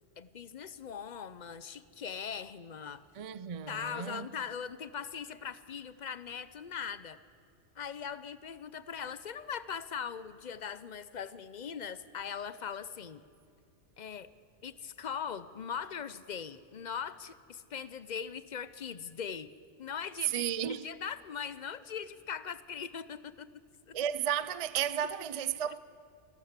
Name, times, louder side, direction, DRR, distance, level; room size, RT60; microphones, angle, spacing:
voice 1, 0.2-3.0 3.7-7.2 7.8-13.2 14.0-14.3 14.6-19.5 19.8-23.6 23.9-24.0, left 7 dB, 45° left, 0.7 m, -40 dB
voice 2, 3.2-4.3 20.2-20.9 23.9-25.8, right 10 dB, 45° right, 0.4 m, -33 dB
27.5 x 12.5 x 8.1 m
omnidirectional pair, 1.2 m